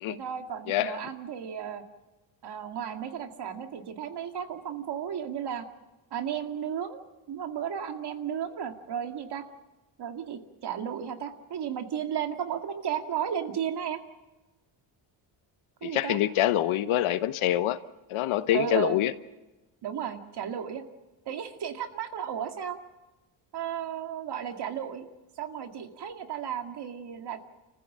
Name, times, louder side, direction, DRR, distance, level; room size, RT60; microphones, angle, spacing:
voice 1, 0.1-1.8 2.4-5.7 6.1-9.4 10.0-14.0 15.8-16.2 18.5-19.0 19.8-20.8 21.3-22.8 23.5-25.1 25.4-27.4, right 9 dB, 55° right, 2.2 m, -34 dB
voice 2, 0.7-1.0 15.8-17.8 18.1-19.1, left 13 dB, 85° left, 1.1 m, -25 dB
30.0 x 15.0 x 7.5 m
cardioid pair, 145°, 47 cm